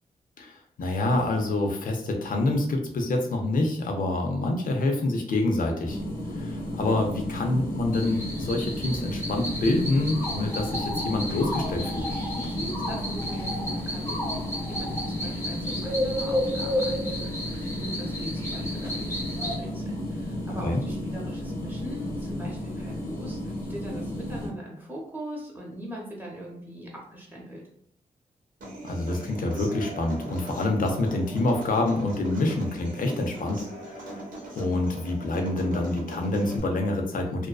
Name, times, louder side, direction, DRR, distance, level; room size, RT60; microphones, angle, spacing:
voice 1, 0.4-6.0 6.4-12.0 20.6-20.8 28.8-33.6 33.9-34.0 34.5-37.5, left 2 dB, 70° left, 2 dB, 0.6 m, -26 dB
sound 1, 5.8-24.5, left 1 dB, 85° left, 1.0 m, -33 dB
sound 2, 7.9-19.6, left 1 dB, 15° left, 0.7 m, -32 dB
voice 2, 12.3-27.6, right 1 dB, 15° right, -3 dB, 0.9 m, -41 dB
Human voice / Acoustic guitar, 28.6-36.6, right 1 dB, 70° right, 0.9 m, -40 dB
2.5 x 2.2 x 2.3 m, 0.68 s
cardioid pair, 70°, 15 cm